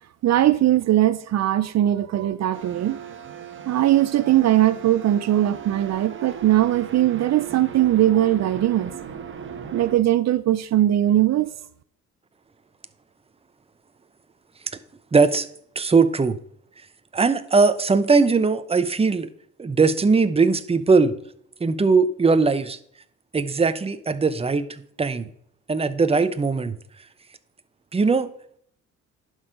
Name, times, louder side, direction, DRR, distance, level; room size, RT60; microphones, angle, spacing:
voice 1, 0.2-3.0 3.7-8.9 9.7-11.5, right 13 dB, 60° right, 0.6 m, -20 dB
sound 1, 2.5-9.9, right 8 dB, 40° right, 1.3 m, -38 dB
voice 2, 15.1-15.5 15.8-16.4 17.1-19.3 19.6-21.1 21.6-22.8 23.3-24.7 25.0-25.3 25.7-26.8 27.9-28.3, right 4 dB, 20° right, 0.8 m, -20 dB
11.0 x 6.5 x 5.1 m
cardioid pair, 90°, 30 cm